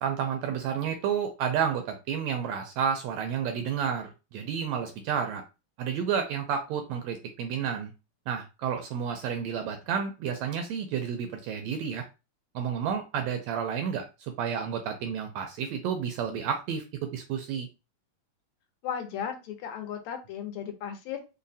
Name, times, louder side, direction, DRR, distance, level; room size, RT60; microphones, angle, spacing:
voice 1, 0.0-5.4 5.8-7.9 8.3-12.0 12.5-17.7, right 7 dB, 80° right, 6 dB, 1.6 m, -31 dB
voice 2, 18.8-21.2, left 8 dB, 75° left, 5 dB, 1.9 m, -35 dB
4.9 x 2.1 x 2.6 m, 0.28 s
omnidirectional pair, 3.3 m